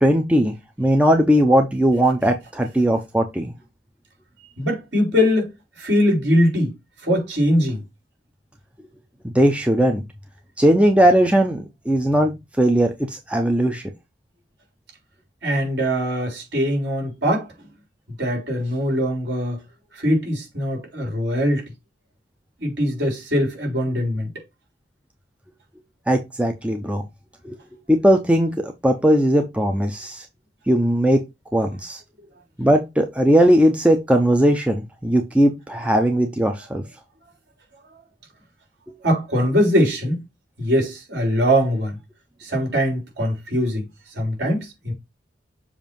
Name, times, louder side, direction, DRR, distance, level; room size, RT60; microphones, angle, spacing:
voice 1, 0.0-3.5 9.3-10.0 10.6-13.8 26.1-27.0 27.4-27.6 27.9-30.3 30.7-31.2 31.5-32.0 32.6-36.8, equal, 5° right, 0.6 m, -18 dB
voice 2, 4.6-6.7 7.0-7.8 15.4-17.5 18.2-19.6 19.9-21.7 22.6-24.3 39.0-40.2 40.6-42.0 42.4-43.9 44.1-44.9, equal, 65° right, 3.6 m, -21 dB
7.2 x 2.7 x 5.3 m
head